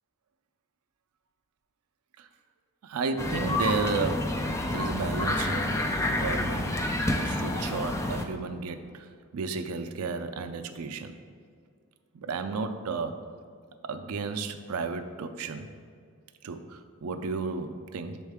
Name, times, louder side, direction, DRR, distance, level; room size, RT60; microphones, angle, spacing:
voice 1, 2.8-4.4 4.7-6.7 7.1-9.1 9.3-11.2 12.1-13.2 13.8-15.7 16.4-18.2, right 4 dB, 75° right, 8 dB, 0.4 m, -33 dB
sound 1, 3.2-8.3, left 1 dB, 15° left, 0.3 m, -29 dB
6.4 x 4.4 x 3.5 m, 2.2 s
head